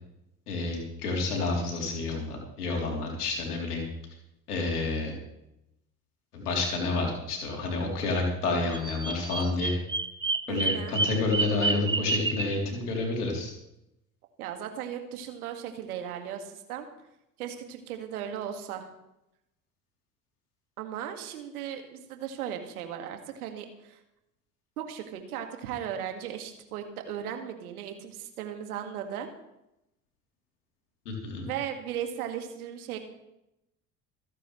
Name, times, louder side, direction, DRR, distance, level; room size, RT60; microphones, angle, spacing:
voice 1, 0.5-3.8 4.5-5.1 6.3-9.7 10.5-13.5 31.1-31.5, left 3 dB, 75° left, 0 dB, 3.7 m, -29 dB
Bird vocalization bird call bird song, 8.7-12.6, right 3 dB, 10° right, 0.8 m, -29 dB
voice 2, 10.5-11.0 14.4-16.9 17.4-18.9 20.8-24.0 24.8-29.3 31.4-33.0, right 9 dB, 70° right, 5 dB, 2.1 m, -37 dB
27.0 x 9.0 x 3.3 m, 0.86 s
figure-of-eight pair, 60°, 46 cm